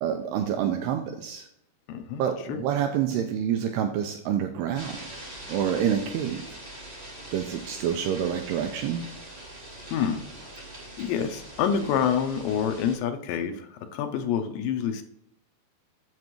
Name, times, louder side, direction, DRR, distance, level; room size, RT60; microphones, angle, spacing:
voice 1, 0.0-1.5 2.2-5.0 5.5-6.4 7.3-9.0, right 9 dB, 85° right, 5 dB, 2.3 m, -27 dB
voice 2, 1.9-2.6 9.9-10.2 11.0-15.0, left 8 dB, 80° left, 6 dB, 2.8 m, -27 dB
sound 1, 4.7-13.0, right 1 dB, 20° right, 1.0 m, -43 dB
7.8 x 7.3 x 3.1 m, 0.75 s
omnidirectional pair, 5.2 m